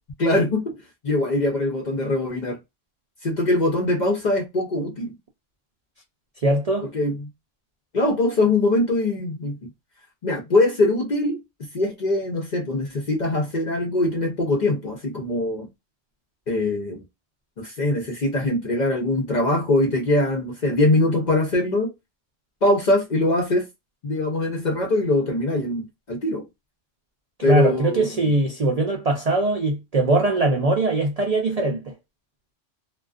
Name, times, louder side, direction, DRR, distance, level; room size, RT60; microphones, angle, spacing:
voice 1, 0.2-0.7 1.0-2.6 3.2-5.1 6.8-7.3 7.9-9.6 10.2-11.4 11.7-15.7 16.5-17.0 17.6-21.9 22.6-23.6 24.0-25.8 26.1-26.4 27.4-28.1, left 2 dB, 50° left, 0.5 m, -22 dB
voice 2, 6.4-6.9 27.5-31.9, right 2 dB, 60° right, 0.4 m, -21 dB
2.3 x 2.3 x 2.3 m
omnidirectional pair, 1.3 m